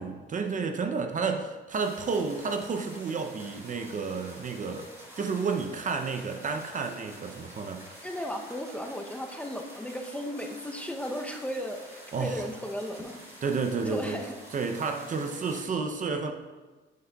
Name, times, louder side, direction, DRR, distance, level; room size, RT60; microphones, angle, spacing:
voice 1, 0.0-4.9 5.2-7.8 12.1-12.4 13.4-14.2 14.5-16.3, right 5 dB, 40° right, 6 dB, 0.6 m, -31 dB
sound 1, 1.7-15.6, equal, 15° right, 2.1 m, -48 dB
voice 2, 8.0-13.2 13.8-14.3, equal, 5° left, 3 dB, 0.6 m, -35 dB
8.3 x 7.8 x 2.3 m, 1.3 s
cardioid pair, 90°, 20 cm